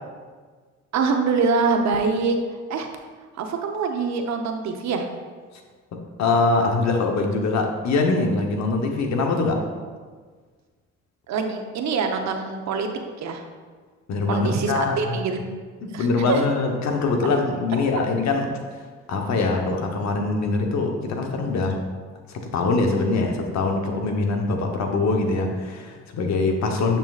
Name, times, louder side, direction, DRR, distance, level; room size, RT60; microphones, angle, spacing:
voice 1, 0.9-2.4 2.7-2.9 3.3-5.1 11.3-12.9 13.2-13.4 14.3-15.5 15.9-16.4 17.7-17.8, right 4 dB, 70° right, 5 dB, 0.8 m, -24 dB
voice 2, 6.2-9.6 14.1-15.1 16.0-18.5 19.1-21.8 22.3-27.0, left 3 dB, 70° left, 3 dB, 1.0 m, -23 dB
7.1 x 5.6 x 2.4 m, 1.5 s
supercardioid pair, 70°, 29 cm